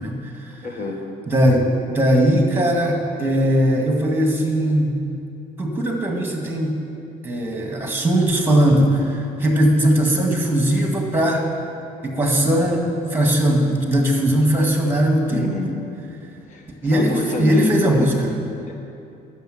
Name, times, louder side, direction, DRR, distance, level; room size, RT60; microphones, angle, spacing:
voice 1, 0.0-0.6 1.3-5.0 5.6-6.8 7.2-11.4 12.0-15.5 16.8-18.4, right 1 dB, 10° right, 2 dB, 1.8 m, -19 dB
voice 2, 0.6-1.1 15.3-15.8 16.5-18.1 18.7-18.8, left 3 dB, 50° left, 2 dB, 1.6 m, -27 dB
10.5 x 6.5 x 7.8 m, 2.6 s
cardioid pair, 110°, 17 cm